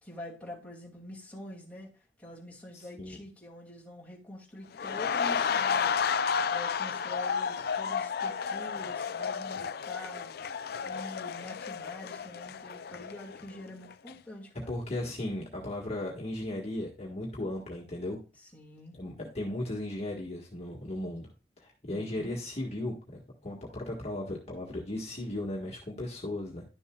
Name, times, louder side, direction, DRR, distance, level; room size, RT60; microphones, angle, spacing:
voice 1, 0.0-1.9 2.2-6.0 6.5-10.3 10.8-14.8 18.5-18.9 21.9-22.4, left 1 dB, 10° left, 2.5 m, -45 dB
voice 2, 2.7-3.2 14.7-18.2 18.9-21.3 21.6-26.6, left 1 dB, 35° left, 1.6 m, -36 dB
sound 1, 4.7-13.6 13.9-14.1, left 6 dB, 60° left, 0.5 m, -32 dB
11.0 x 6.9 x 2.3 m
head